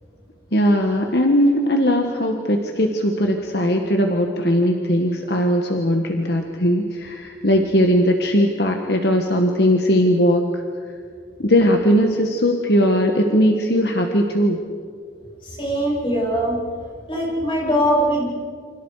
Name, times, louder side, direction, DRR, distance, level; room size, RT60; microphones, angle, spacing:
voice 1, 0.5-10.6 11.4-14.6, equal, 60° left, 3 dB, 1.7 m, -19 dB
voice 2, 15.4-16.6 17.1-18.3, equal, 30° left, -3 dB, 7.5 m, -21 dB
29.0 x 26.5 x 5.0 m, 2.1 s
head